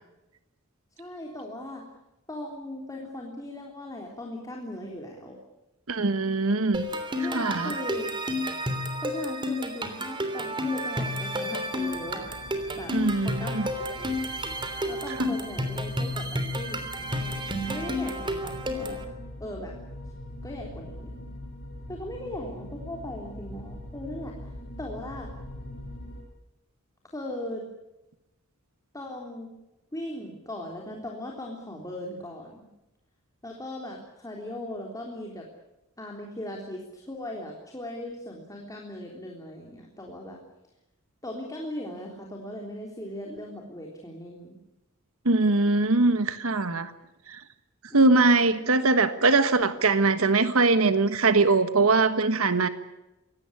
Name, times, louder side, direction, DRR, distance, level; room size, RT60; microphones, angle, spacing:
voice 1, 1.0-1.8 2.3-5.4 7.2-8.1 9.0-12.3 12.7-12.9 13.2-13.6 13.9-14.2 14.9-19.0 19.4-19.7 20.4-21.2 21.9-24.3 24.8-25.3 27.0-27.6 28.9-29.5 29.9-32.7 33.4-35.5 36.0-40.4 41.2-44.6 47.9-48.7, left 1 dB, 15° left, 0 dB, 3.6 m, -38 dB
voice 2, 5.9-6.9 7.2-7.8 12.9-13.7 15.2-15.3 45.2-46.9 47.3-47.4 47.9-52.7, right 3 dB, 75° right, 10 dB, 1.4 m, -22 dB
sound 1, 6.7-19.0, equal, 25° right, 3.2 m, -31 dB
sound 2, 11.6-26.2, left 1 dB, 50° left, 7.0 m, -43 dB
24.5 x 18.0 x 9.8 m, 0.97 s
head